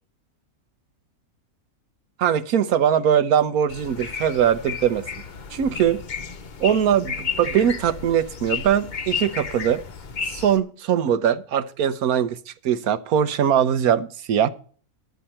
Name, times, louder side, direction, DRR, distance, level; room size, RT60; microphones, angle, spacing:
voice 1, 2.2-5.0 5.5-6.0 6.6-9.8 10.3-12.4 12.6-14.5, right 9 dB, 75° right, 1.3 m, -21 dB
sound 1, 3.7-10.6, left 6 dB, 40° left, 0.8 m, -33 dB
11.5 x 9.6 x 4.3 m
omnidirectional pair, 1.6 m